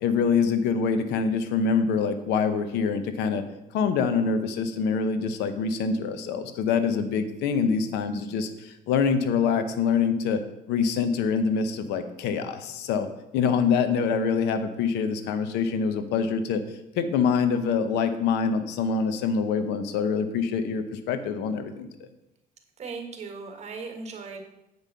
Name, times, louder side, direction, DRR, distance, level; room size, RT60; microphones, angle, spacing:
voice 1, 0.0-3.4 3.7-10.4 10.7-22.1, left 5 dB, 90° left, 10 dB, 0.9 m, -25 dB
voice 2, 22.8-24.4, right 4 dB, 40° right, 4 dB, 1.6 m, -37 dB
7.9 x 5.4 x 5.7 m, 0.89 s
cardioid pair, 110°, 17 cm